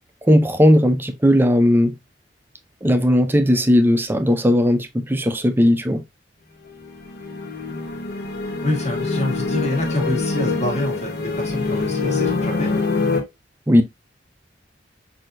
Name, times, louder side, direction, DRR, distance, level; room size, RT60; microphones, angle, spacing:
voice 1, 0.2-2.0 2.8-6.0 13.7-13.8, equal, 10° right, 0.5 m, -17 dB
sound 1, 6.7-13.2, left 3 dB, 60° left, 0.9 m, -25 dB
voice 2, 8.6-12.7, left 1 dB, 40° left, 1.6 m, -26 dB
6.0 x 2.7 x 2.5 m
head